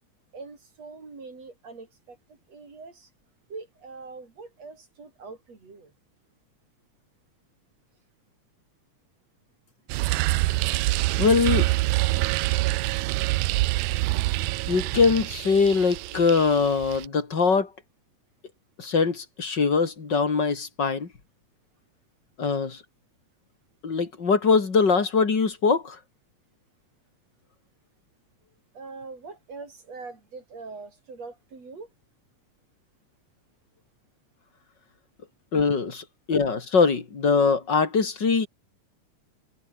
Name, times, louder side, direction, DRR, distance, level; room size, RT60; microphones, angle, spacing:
voice 1, 0.3-3.1 3.5-5.9 28.7-31.9, right 4 dB, 60° right, 6.5 m, -43 dB
sound 1, 9.9-17.1, right 20 dB, 90° right, 2.0 m, -26 dB
voice 2, 11.2-11.7 14.7-17.7 18.8-21.1 22.4-22.8 23.8-26.0 35.5-38.5, left 5 dB, 35° left, 3.3 m, -22 dB
omnidirectional pair, 3.3 m